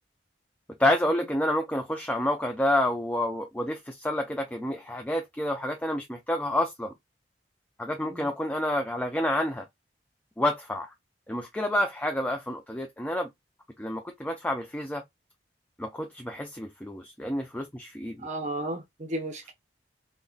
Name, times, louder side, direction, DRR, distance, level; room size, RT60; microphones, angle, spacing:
voice 1, 0.8-6.9 7.8-9.7 10.4-10.9 11.3-13.3 13.8-15.0 15.8-18.3, left 1 dB, 10° left, 0.3 m, -29 dB
voice 2, 18.2-19.5, right 1 dB, 45° right, 0.6 m, -33 dB
3.6 x 2.1 x 2.3 m
head